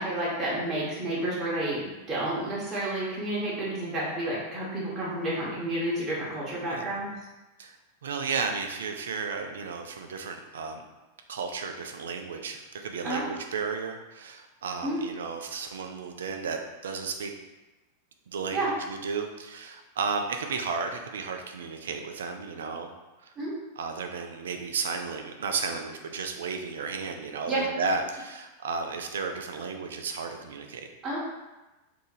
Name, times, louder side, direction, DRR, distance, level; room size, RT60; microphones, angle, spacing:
voice 1, 0.0-7.1 13.0-13.2 14.8-15.0 18.5-18.7 23.4-23.5 27.5-27.6 31.0-31.2, right 1 dB, 30° right, -7 dB, 1.1 m, -30 dB
voice 2, 8.0-10.8 11.3-17.3 18.3-22.9 23.8-30.9, right 5 dB, 80° right, 5 dB, 0.4 m, -33 dB
2.8 x 2.5 x 4.0 m, 1.1 s
hypercardioid pair, 100°, 0 cm